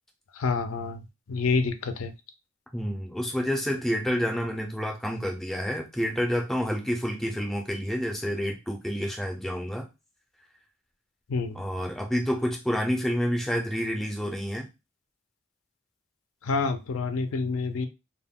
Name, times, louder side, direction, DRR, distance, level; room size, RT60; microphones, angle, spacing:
voice 1, 0.4-1.0 1.3-2.1 11.3-11.6 16.4-17.9, left 4 dB, 70° left, 0.4 m, -27 dB
voice 2, 2.7-9.9 11.5-14.7, equal, ahead, 0.4 m, -29 dB
2.2 x 2.1 x 3.5 m
head